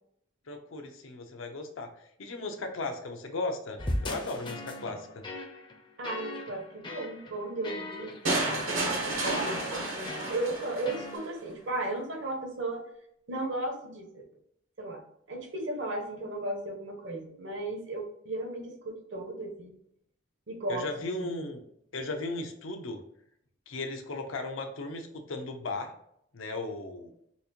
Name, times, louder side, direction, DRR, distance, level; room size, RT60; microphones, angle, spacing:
voice 1, 0.5-1.9 2.2-5.2 20.7-21.6 21.9-23.0 23.7-25.9 26.3-27.1, left 2 dB, 85° left, 5 dB, 0.7 m, -36 dB
sound 1, 3.8-11.2, left 1 dB, 25° left, 0.4 m, -39 dB
voice 2, 6.0-8.8 9.2-12.8 13.3-14.2 14.8-15.0 15.3-19.7 20.5-20.9 21.2-21.3, right 2 dB, 70° right, 3 dB, 0.9 m, -35 dB
sound 2, 8.2-11.2, right 2 dB, 85° right, 1.2 m, -31 dB
4.1 x 2.5 x 2.8 m, 0.72 s
head